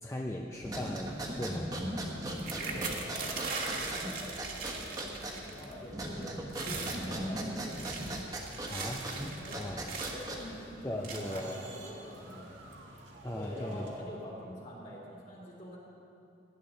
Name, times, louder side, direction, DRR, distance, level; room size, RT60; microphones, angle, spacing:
voice 1, 0.0-1.7 8.7-9.2 9.6-9.9 10.8-11.6 13.2-13.9, left 1 dB, 15° left, 0 dB, 0.5 m, -38 dB
sound 1, 0.6-10.7, right 1 dB, 20° right, 1.3 m, -39 dB
sound 2, 2.4-5.7 6.0-6.2 6.5-7.0 7.6-10.3 11.0-11.6 12.3-12.4 12.7-13.0, right 4 dB, 50° right, 1.5 m, -39 dB
voice 2, 2.6-4.3 4.7-7.8 9.4-9.7 10.1-12.6 13.3-15.8, equal, 40° left, -5 dB, 3.1 m, -45 dB
sound 3, 8.9-14.0, right 2 dB, 85° right, 1.6 m, -53 dB
17.0 x 10.5 x 3.9 m, 2.7 s
head